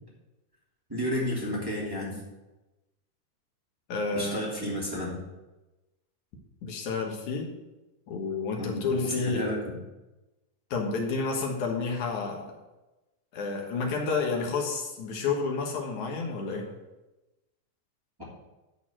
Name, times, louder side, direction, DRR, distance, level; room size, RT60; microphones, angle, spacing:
voice 1, 0.9-2.2 4.1-5.2 8.6-9.8, left 1 dB, 10° right, -6 dB, 1.8 m, -32 dB
voice 2, 3.9-4.4 6.6-7.5 8.1-9.5 10.7-12.5 13.3-16.7, left 4 dB, 60° left, 1 dB, 2.5 m, -30 dB
11.0 x 4.1 x 7.7 m, 1.0 s
omnidirectional pair, 4.3 m